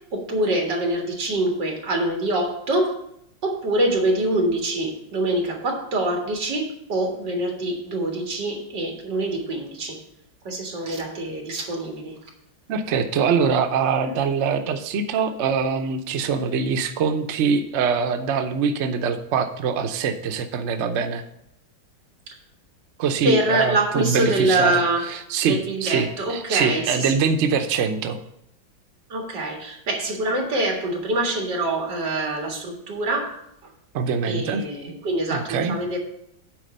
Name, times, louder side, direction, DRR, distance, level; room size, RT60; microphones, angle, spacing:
voice 1, 0.1-2.9 3.4-10.0 10.4-12.2 14.0-14.1 22.3-22.4 23.2-25.1 25.4-27.1 29.1-33.4 33.6-33.7 34.2-36.0, right 1 dB, 60° right, 1 dB, 2.4 m, -25 dB
voice 2, 12.7-21.2 23.0-24.8 25.1-28.2 33.9-34.6 35.3-35.8, right 6 dB, 75° right, 7 dB, 0.6 m, -23 dB
9.2 x 4.3 x 6.6 m, 0.76 s
omnidirectional pair, 2.2 m